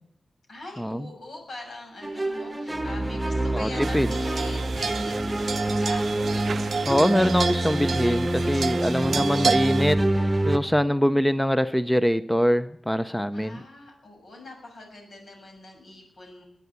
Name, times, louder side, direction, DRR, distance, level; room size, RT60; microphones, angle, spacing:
voice 1, 0.5-6.1 13.3-16.4, left 2 dB, 75° left, 1 dB, 6.9 m, -43 dB
sound 1, 2.0-10.6, right 1 dB, 15° right, 1.1 m, -26 dB
voice 2, 3.5-4.1 6.9-13.6, equal, 5° left, 12 dB, 0.5 m, -23 dB
sound 2, 3.8-9.9, right 5 dB, 70° right, 0.6 m, -30 dB
21.0 x 8.5 x 8.2 m, 0.74 s
wide cardioid pair, 90°, 0 cm